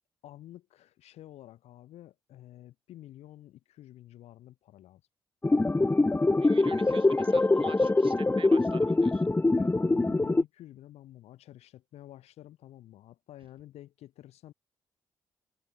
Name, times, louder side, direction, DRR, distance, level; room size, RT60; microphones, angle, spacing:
voice 1, 0.2-5.0 6.7-6.8 9.5-14.5, left 13 dB, 65° left, 7.5 m, -50 dB
sound 1, 5.4-10.4, left 2 dB, 15° left, 1.0 m, -24 dB
voice 2, 6.4-9.3, right 7 dB, 50° right, 5.6 m, -47 dB
figure-of-eight pair, 40°, 11 cm